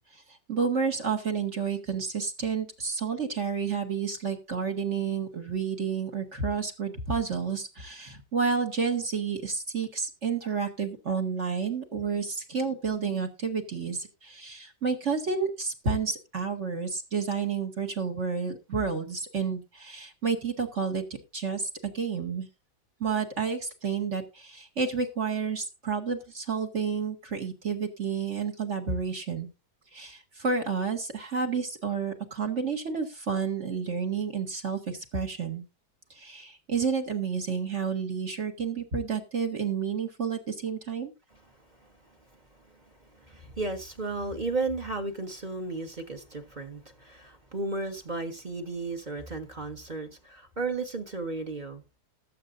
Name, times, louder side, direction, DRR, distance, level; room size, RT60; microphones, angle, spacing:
voice 1, 0.5-21.0 21.3-22.5 23.0-29.5 29.9-35.6 36.1-41.1, right 5 dB, 45° right, 1.8 m, -30 dB
voice 2, 43.1-51.8, right 3 dB, 30° right, 1.4 m, -34 dB
19.0 x 7.7 x 2.6 m
omnidirectional pair, 1.8 m